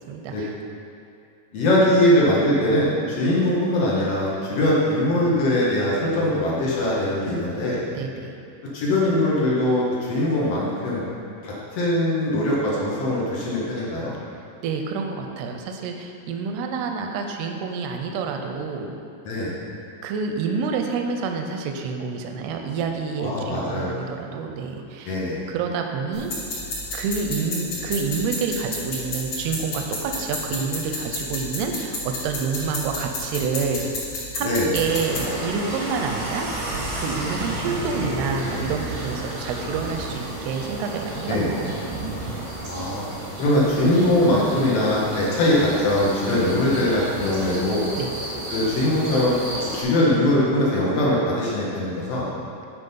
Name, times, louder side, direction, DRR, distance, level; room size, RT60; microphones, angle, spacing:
voice 1, 0.1-0.5 8.0-8.3 14.6-18.9 20.0-25.2 25.5-26.3 26.9-33.9 34.3-36.7 37.0-41.6 47.9-48.1, right 5 dB, 85° right, 4 dB, 2.5 m, -28 dB
voice 2, 1.5-7.8 8.7-11.0 11.4-14.1 19.2-19.5 23.2-24.0 25.0-25.4 34.4-34.7 38.4-38.7 41.3-41.5 42.7-43.0 43.4-47.8 48.5-49.4 49.7-52.3, left 1 dB, 75° left, -6 dB, 1.4 m, -21 dB
sound 1, 26.1-35.2, left 2 dB, 50° left, 2.6 m, -31 dB
sound 2, 34.7-49.8, right 1 dB, 70° right, 1.0 m, -32 dB
9.9 x 4.2 x 5.4 m, 2.5 s
omnidirectional pair, 4.7 m